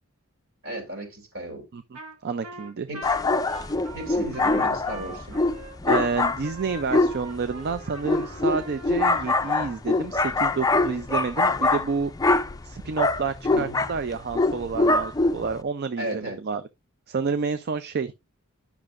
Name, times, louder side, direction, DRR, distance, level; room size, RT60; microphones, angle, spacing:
voice 1, 0.6-1.6 2.9-3.1 3.9-5.4 13.5-13.8 16.0-16.4, right 1 dB, 65° right, 3.0 m, -34 dB
voice 2, 1.7-2.9 5.8-12.1 12.6-16.6 17.1-18.1, right 5 dB, 50° right, 0.4 m, -29 dB
Trumpet, 1.9-2.2 2.4-9.8, right 2 dB, 85° right, 1.7 m, -42 dB
sound 1, 3.0-15.6, left 2 dB, 15° left, 0.4 m, -24 dB
10.5 x 5.9 x 2.5 m
head